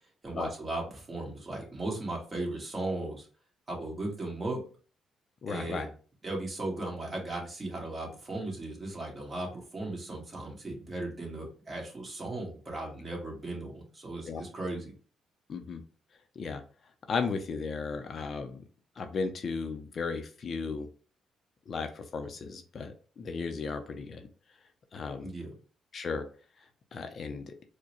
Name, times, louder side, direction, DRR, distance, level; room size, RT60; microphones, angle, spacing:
voice 1, 0.2-3.3 3.7-4.6 5.5-5.9 6.2-14.9 25.2-25.5, right 2 dB, 30° right, -1 dB, 1.7 m, -37 dB
voice 2, 5.4-5.9 14.3-14.4 15.5-15.8 16.4-16.6 17.1-18.6 19.0-20.9 21.7-24.2 24.9-25.3 25.9-26.2 26.9-27.5, left 4 dB, 50° left, 6 dB, 0.5 m, -35 dB
4.5 x 2.2 x 3.0 m, 0.40 s
cardioid pair, 90°, 0 cm